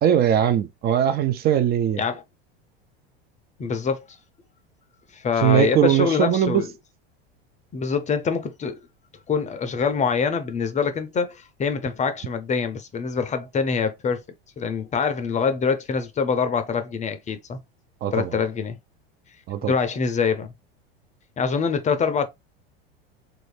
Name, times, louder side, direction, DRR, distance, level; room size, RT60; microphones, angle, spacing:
voice 1, 0.0-2.0 5.4-6.7 18.0-18.3 19.5-19.7, right 10 dB, 35° right, 0.4 m, -20 dB
voice 2, 3.6-4.0 5.1-6.7 7.7-8.8 9.3-14.2 14.6-17.6 18.1-18.8 19.6-20.5 21.4-22.3, left 5 dB, 25° left, 0.5 m, -24 dB
3.2 x 2.6 x 3.1 m
hypercardioid pair, 95°, 31 cm